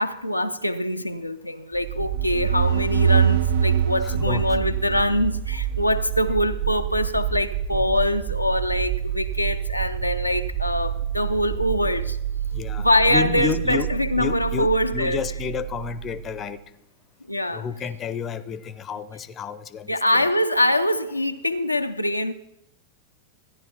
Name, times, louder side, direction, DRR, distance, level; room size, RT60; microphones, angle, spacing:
voice 1, 0.0-12.2 12.8-15.2 17.3-17.7 19.9-22.3, left 1 dB, 85° left, 0.4 m, -24 dB
sound 1, 1.7-16.5, right 9 dB, 40° right, 1.7 m, -29 dB
sound 2, 2.0-5.7, right 7 dB, 60° right, 0.6 m, -23 dB
voice 2, 4.0-4.4 12.5-13.9 14.2-16.6 17.5-20.3, left 7 dB, 25° left, 0.6 m, -30 dB
14.0 x 10.5 x 4.2 m
figure-of-eight pair, 90°, 0 cm